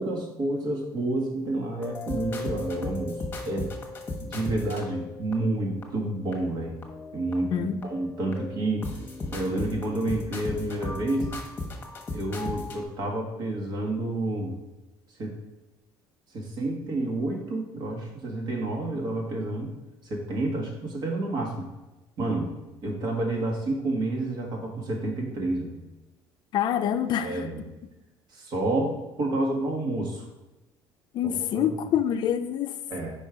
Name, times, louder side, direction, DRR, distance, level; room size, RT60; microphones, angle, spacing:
voice 1, 0.0-3.7 4.2-6.8 7.1-8.9 9.3-11.3 12.1-14.6 15.2-15.4 16.3-19.7 20.0-21.7 22.2-22.5 22.8-25.8 27.2-27.6 28.3-30.2 31.2-31.7 32.9-33.3, right 2 dB, 55° right, 0 dB, 1.7 m, -29 dB
sound 1, 1.8-5.8 6.3-6.4 6.8-7.5 7.8-12.8, left 2 dB, 25° left, 1.2 m, -36 dB
voice 2, 26.5-27.4 31.1-32.8, left 9 dB, 55° left, 9 dB, 0.5 m, -26 dB
5.3 x 4.5 x 5.0 m, 1.0 s
cardioid pair, 120°, 9 cm